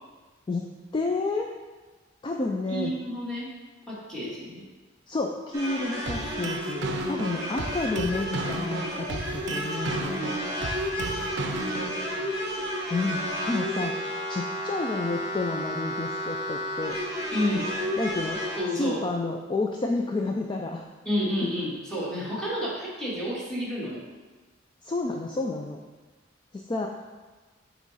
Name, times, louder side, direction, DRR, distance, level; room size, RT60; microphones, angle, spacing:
voice 1, 0.9-1.5 2.2-2.9 5.1-10.4 12.9-14.0 14.3-17.0 18.0-18.4 18.7-20.8 24.8-25.8 26.5-26.9, left 3 dB, 25° left, 1 dB, 0.3 m, -30 dB
voice 2, 2.7-3.5 3.9-4.6 10.9-11.3 11.7-12.3 17.3-17.7 18.6-19.0 21.0-24.0, equal, 5° left, -8 dB, 1.7 m, -30 dB
sound 1, 5.5-18.6, equal, 15° right, 1.3 m, -32 dB
sound 2, 6.1-12.1, right 3 dB, 60° right, 0.5 m, -34 dB
8.3 x 3.1 x 4.0 m, 1.3 s
head